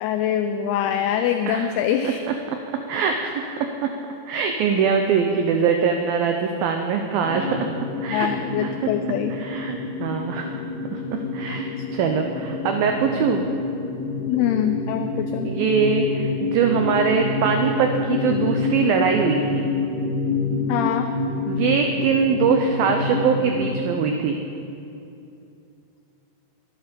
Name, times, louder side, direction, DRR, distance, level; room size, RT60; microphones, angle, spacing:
voice 1, 0.0-2.2 8.1-9.4 14.3-15.5 20.7-21.1, left 10 dB, 90° left, 8 dB, 2.2 m, -24 dB
voice 2, 2.9-3.9 4.3-7.6 8.0-8.3 8.6-8.9 9.3-10.6 10.9-13.5 15.4-19.6 21.5-24.4, right 6 dB, 85° right, 4 dB, 2.0 m, -22 dB
sound 1, 7.2-23.8, left 3 dB, 60° left, 5.9 m, -27 dB
23.0 x 11.5 x 5.2 m, 2.7 s
omnidirectional pair, 5.2 m